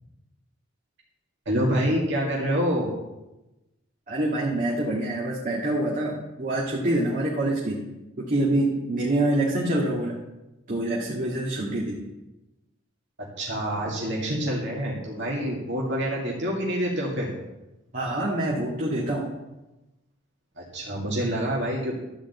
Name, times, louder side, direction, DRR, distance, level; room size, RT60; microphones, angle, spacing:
voice 1, 1.5-2.9 13.2-17.3 20.6-21.9, equal, 65° right, -3 dB, 2.1 m, -27 dB
voice 2, 4.1-7.8 8.2-10.1 10.7-12.1 17.9-19.3, right 1 dB, 40° right, -3 dB, 1.8 m, -26 dB
12.5 x 5.1 x 8.0 m, 1.0 s
head